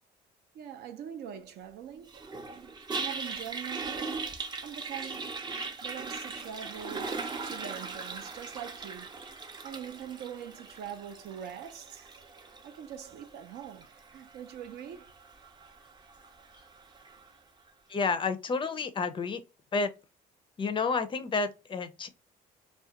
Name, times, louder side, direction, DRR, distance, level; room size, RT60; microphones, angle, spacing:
voice 1, 0.5-2.2 2.9-5.4 5.8-12.1 12.6-15.1, right 9 dB, 75° right, 0.5 m, -43 dB
Toilet flush, 2.1-17.3, right 4 dB, 25° right, 0.5 m, -40 dB
voice 2, 17.9-19.4 19.7-19.9 20.6-22.1, left 4 dB, 30° left, 0.4 m, -30 dB
2.3 x 2.2 x 2.8 m
cardioid pair, 110°, 17 cm